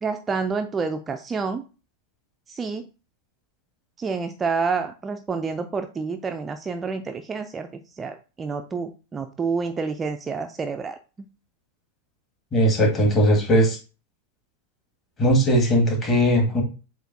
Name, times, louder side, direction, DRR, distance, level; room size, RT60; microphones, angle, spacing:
voice 1, 0.0-1.6 2.5-2.9 4.0-7.7 7.9-11.0, right 4 dB, 20° right, 6 dB, 0.4 m, -28 dB
voice 2, 12.5-13.8 15.2-16.6, equal, 25° left, 0 dB, 1.6 m, -19 dB
7.6 x 2.6 x 2.5 m, 0.33 s
figure-of-eight pair, 90°, 0 cm